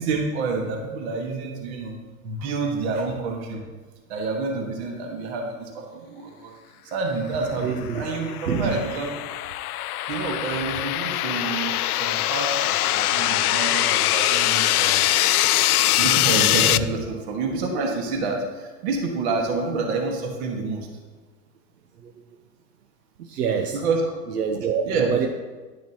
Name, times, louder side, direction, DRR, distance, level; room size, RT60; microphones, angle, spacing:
voice 1, 0.0-2.0 2.2-3.7 4.1-6.5 6.8-9.1 10.1-15.1 16.0-20.9 23.7-24.0 24.9-25.1, right 3 dB, 45° right, 1 dB, 1.8 m, -28 dB
voice 2, 7.6-8.0 8.5-8.8 22.0-22.2 23.2-23.8 24.3-25.3, right 7 dB, 75° right, 5 dB, 1.0 m, -26 dB
sound 1, 7.8-16.8, left 14 dB, 70° left, 0.6 m, -22 dB
11.0 x 10.0 x 3.0 m, 1.3 s
hypercardioid pair, 145°, 47 cm